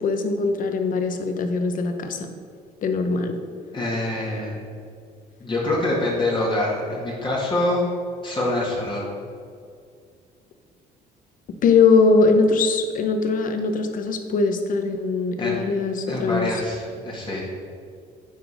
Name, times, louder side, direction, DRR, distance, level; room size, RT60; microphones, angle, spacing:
voice 1, 0.0-2.3 2.8-3.4 11.6-16.5, left 4 dB, 55° left, 6 dB, 0.9 m, -21 dB
voice 2, 3.7-4.6 5.4-7.9 8.2-9.1 15.4-15.6 16.1-17.4, left 1 dB, 30° left, -4 dB, 1.9 m, -25 dB
9.4 x 4.0 x 5.1 m, 2.3 s
cardioid pair, 110°, 17 cm